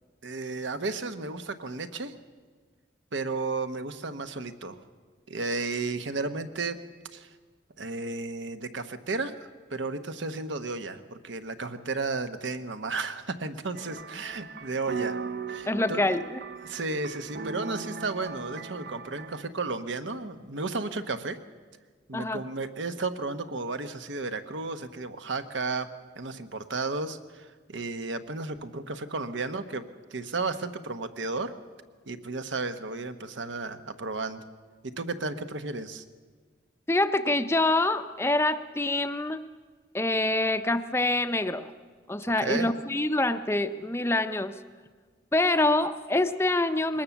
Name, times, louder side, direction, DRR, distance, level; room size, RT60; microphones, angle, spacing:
voice 1, 0.2-2.1 3.1-4.8 5.3-6.8 7.1-7.3 7.8-9.3 9.7-15.2 15.5-16.0 16.6-21.4 22.1-25.9 26.2-31.6 32.1-34.4 34.8-36.0 42.4-42.7, right 3 dB, 85° right, 9 dB, 1.1 m, -33 dB
sound 1, 13.7-19.4, right 5 dB, 55° right, 0.6 m, -38 dB
voice 2, 15.6-16.4 22.1-22.4 36.9-39.5 39.9-41.7 42.1-44.5 45.3-47.0, left 2 dB, 15° left, 10 dB, 0.5 m, -26 dB
21.0 x 19.5 x 7.1 m, 1.5 s
head